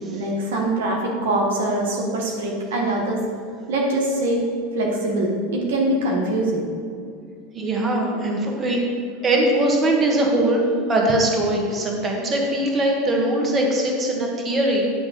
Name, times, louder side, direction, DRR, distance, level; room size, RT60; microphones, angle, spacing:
voice 1, 0.1-3.2 3.7-4.5 4.7-6.7, right 1 dB, 75° right, -1 dB, 1.5 m, -23 dB
voice 2, 7.5-8.8 9.2-10.6 10.9-14.8, right 1 dB, 30° right, -1 dB, 1.8 m, -21 dB
9.9 x 3.5 x 6.8 m, 2.4 s
hypercardioid pair, 100°, 0 cm